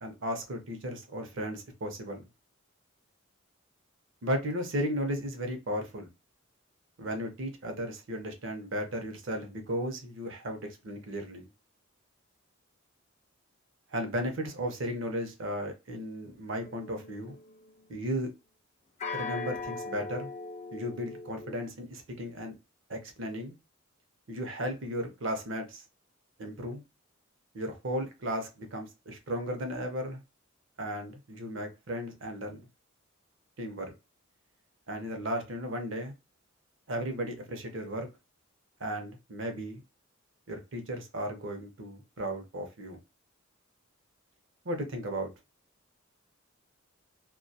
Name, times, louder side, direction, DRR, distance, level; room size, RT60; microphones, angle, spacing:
voice 1, 0.0-2.3 4.2-6.1 7.0-11.5 13.9-17.4 17.9-18.3 19.1-20.3 20.7-22.5 22.9-23.6 24.3-25.8 26.4-26.8 27.5-30.2 30.8-32.7 33.6-33.9 34.9-36.1 36.9-38.1 38.8-39.8 40.5-43.0 44.6-45.3, equal, 65° right, 5 dB, 0.7 m, -35 dB
sound 1, 16.6-17.8 19.0-21.6, left 4 dB, 35° left, 0.3 m, -39 dB
2.3 x 2.2 x 2.6 m, 0.26 s
head